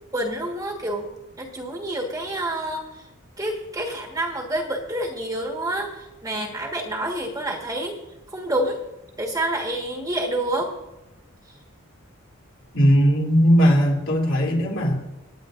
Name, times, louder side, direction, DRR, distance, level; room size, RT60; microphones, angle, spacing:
voice 1, 0.1-1.1 1.4-3.1 3.4-7.9 8.3-8.8 9.2-10.7, right 1 dB, 15° right, 0 dB, 1.5 m, -28 dB
voice 2, 12.7-14.9, equal, 65° left, -3 dB, 3.1 m, -18 dB
26.0 x 9.3 x 2.6 m, 0.96 s
head